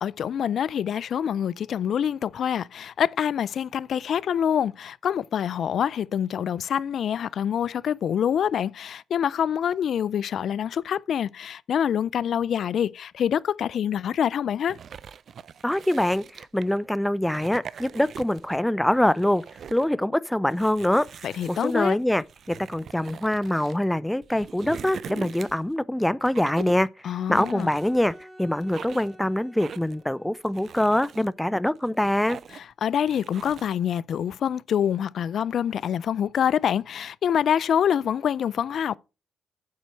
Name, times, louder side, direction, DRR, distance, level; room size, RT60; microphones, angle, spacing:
voice 1, 0.0-14.8 21.2-22.0 27.0-27.7 32.5-39.0, left 9 dB, 65° left, 0.3 m, -26 dB
sound 1, 14.7-16.8 17.2-18.6 18.9-19.9 20.5-23.8 24.2-25.7 26.2-26.9 27.3-28.2 28.6-29.2 29.6-30.0 30.4-31.3 31.8-32.7 33.1-33.7, right 7 dB, 60° right, 0.4 m, -42 dB
voice 2, 15.6-19.4 19.7-21.1 21.5-26.9 27.3-32.4, left 1 dB, 5° left, 0.5 m, -24 dB
Bowed string instrument, 27.0-30.5, equal, 20° right, 2.3 m, -50 dB
8.4 x 4.4 x 6.1 m
supercardioid pair, 65°, 0 cm